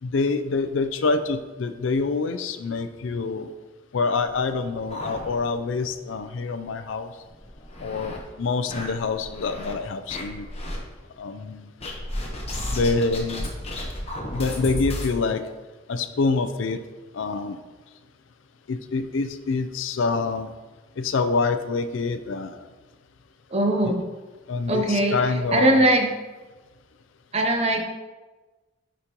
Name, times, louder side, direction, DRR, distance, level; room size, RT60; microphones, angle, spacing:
voice 1, 0.0-3.5 3.9-7.1 7.8-10.5 11.2-11.7 12.7-13.5 14.3-15.4 15.9-16.8 17.1-17.6 18.7-20.5 21.0-22.6 24.5-26.0, left 4 dB, 75° left, 10 dB, 0.5 m, -26 dB
sound 1, 4.3-5.8 6.1-6.2 6.6-6.7 7.3-8.2 8.7-9.7 10.1-10.8 11.8-15.1, left 1 dB, 30° left, 1.1 m, -33 dB
voice 2, 23.5-24.0 24.7-25.2 25.5-26.1 27.3-27.8, right 1 dB, 35° right, 3 dB, 0.8 m, -20 dB
8.2 x 5.1 x 3.0 m, 1.2 s
head